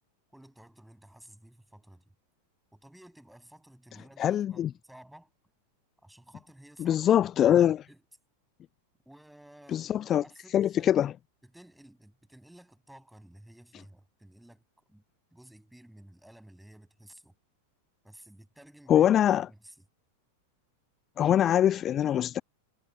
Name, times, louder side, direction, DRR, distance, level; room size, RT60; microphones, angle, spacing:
voice 1, 0.3-2.1 2.7-5.3 6.0-7.1 7.4-8.0 9.1-11.0 11.4-15.0 15.3-17.3 18.0-19.1 19.5-19.7, right 1 dB, ahead, 7.8 m, -54 dB
voice 2, 4.2-4.7 6.8-7.8 9.7-10.2 10.5-11.1 18.9-19.5 21.2-22.4, left 10 dB, 30° left, 0.3 m, -23 dB
figure-of-eight pair, 90°, 0 cm